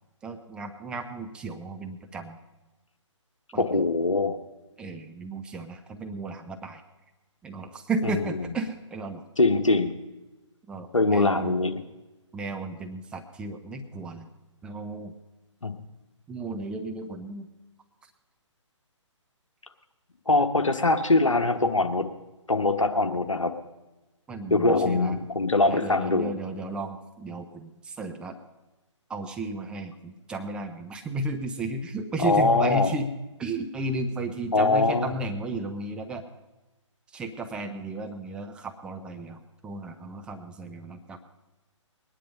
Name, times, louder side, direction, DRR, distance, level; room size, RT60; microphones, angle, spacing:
voice 1, 0.2-2.4 3.5-3.8 4.8-6.8 7.4-9.2 10.7-11.6 12.3-14.3 14.6-15.1 16.3-17.5 24.3-25.3 25.7-28.4 29.1-33.1 33.4-36.2 37.1-41.2, right 2 dB, 5° right, 4 dB, 0.5 m, -34 dB
voice 2, 3.6-4.4 8.0-8.1 9.4-9.9 10.9-11.8 15.6-15.8 20.3-22.0 22.5-23.5 24.5-26.3 32.2-32.9 34.5-35.1, left 2 dB, 80° left, 7 dB, 1.4 m, -22 dB
20.5 x 10.0 x 5.3 m, 1.1 s
figure-of-eight pair, 135°, 16 cm